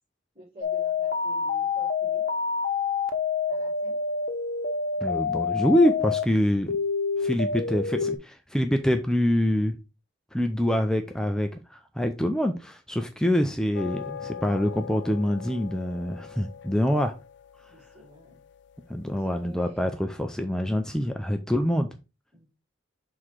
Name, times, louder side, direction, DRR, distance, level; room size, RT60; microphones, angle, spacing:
voice 1, 0.3-2.2 3.5-4.0 17.7-18.4 19.1-19.9 22.3-22.5, left 1 dB, 30° right, 3.6 m, -49 dB
sound 1, 0.6-6.2 6.7-8.2, left 5 dB, 50° left, 0.9 m, -27 dB
voice 2, 5.0-6.8 7.2-9.8 10.3-17.2 18.9-21.9, equal, 5° left, 0.4 m, -25 dB
sound 2, 13.7-19.2, left 8 dB, 65° left, 0.4 m, -42 dB
6.4 x 3.7 x 4.6 m
head